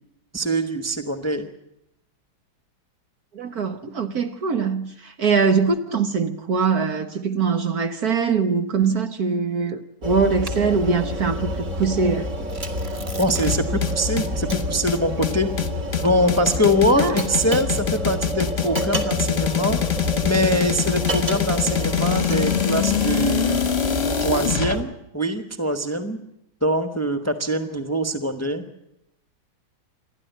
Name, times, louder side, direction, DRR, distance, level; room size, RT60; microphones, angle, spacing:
voice 1, 0.3-1.5 12.1-12.2 13.2-15.5 16.0-19.8 20.2-23.7 24.2-26.2 26.6-28.6, equal, 10° left, 1.1 m, -23 dB
voice 2, 3.3-12.3 16.9-17.2, right 5 dB, 55° right, 1.5 m, -22 dB
sound 1, 10.0-24.8, left 1 dB, 35° right, 2.6 m, -28 dB
Tearing, 12.5-13.9 14.2-14.3 14.8-17.2 17.9-18.3, left 1 dB, 15° right, 1.8 m, -38 dB
sound 2, 13.5-24.8, left 9 dB, 35° left, 1.3 m, -24 dB
28.5 x 11.5 x 9.3 m
omnidirectional pair, 2.2 m